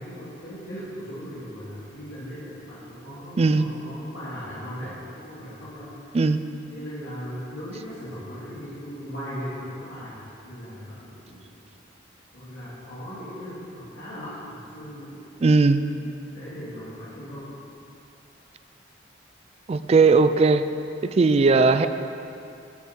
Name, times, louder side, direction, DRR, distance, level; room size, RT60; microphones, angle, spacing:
voice 1, 0.0-5.9 6.7-10.2 10.4-11.5 12.3-15.2 16.3-17.6, equal, 90° left, -11 dB, 2.8 m, -38 dB
voice 2, 3.4-3.7 6.1-6.4 15.4-15.8 19.7-20.7 21.0-21.9, right 4 dB, 35° right, 11 dB, 0.3 m, -18 dB
12.5 x 7.0 x 4.5 m, 2.6 s
head